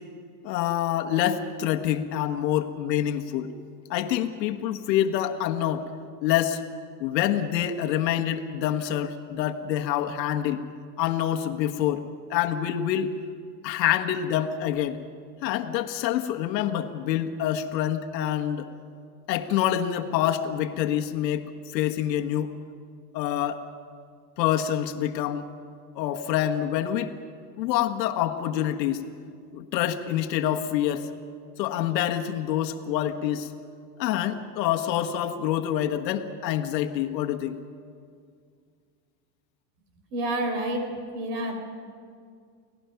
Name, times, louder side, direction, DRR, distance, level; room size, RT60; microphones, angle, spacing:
voice 1, 0.4-3.5 3.9-5.9 6.2-6.6 7.0-10.6 11.0-12.0 12.3-13.1 13.6-15.0 15.4-18.7 19.3-22.5 23.1-23.6 24.4-25.4 25.9-27.1 27.6-29.0 29.5-31.1 31.6-33.5 34.0-37.6, left 11 dB, 80° left, 5 dB, 1.5 m, -26 dB
voice 2, 40.1-41.6, right 1 dB, 75° right, 5 dB, 4.3 m, -29 dB
30.0 x 18.0 x 5.8 m, 2.2 s
supercardioid pair, 120°, 50 cm